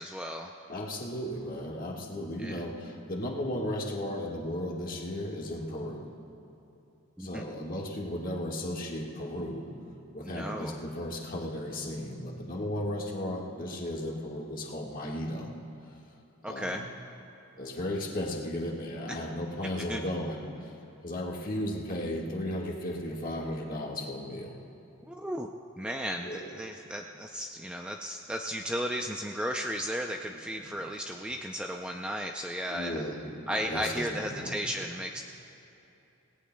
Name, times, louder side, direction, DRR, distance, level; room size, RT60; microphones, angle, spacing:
voice 1, 0.0-0.5 2.4-2.6 7.2-7.5 10.2-10.8 16.4-16.9 19.1-19.2 19.8-20.0 25.1-33.1 33.5-35.2, equal, 5° right, 2 dB, 0.4 m, -35 dB
voice 2, 0.7-6.0 7.2-9.7 10.1-15.5 16.4-16.9 17.6-20.7 21.0-24.5 26.2-26.4 30.3-30.7 32.7-34.6, left 1 dB, 40° left, -2 dB, 1.5 m, -35 dB
26.0 x 18.0 x 2.2 m, 2.8 s
head